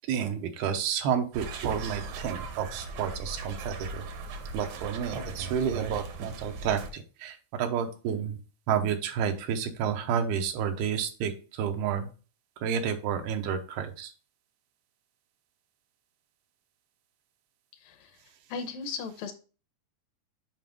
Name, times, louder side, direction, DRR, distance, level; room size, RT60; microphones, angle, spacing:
voice 1, 0.1-4.0 4.5-8.4 8.7-11.3 11.6-12.1 12.6-14.1, right 8 dB, 85° right, 6 dB, 2.9 m, -30 dB
sound 1, 1.3-6.9, right 3 dB, 70° right, 1.8 m, -38 dB
voice 2, 17.8-18.2 18.5-19.3, left 5 dB, 75° left, 7 dB, 2.3 m, -37 dB
7.7 x 5.0 x 3.5 m, 0.36 s
omnidirectional pair, 4.4 m